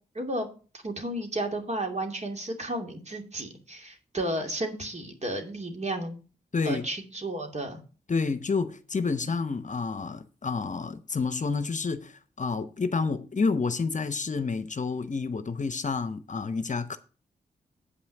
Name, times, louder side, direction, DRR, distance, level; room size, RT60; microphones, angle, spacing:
voice 1, 0.1-0.5 0.8-6.2 6.6-7.8, right 1 dB, 45° right, 2.7 m, -33 dB
voice 2, 6.5-6.8 8.1-17.0, left 4 dB, 45° left, 0.9 m, -29 dB
8.4 x 5.7 x 6.6 m
cardioid pair, 45°, 17 cm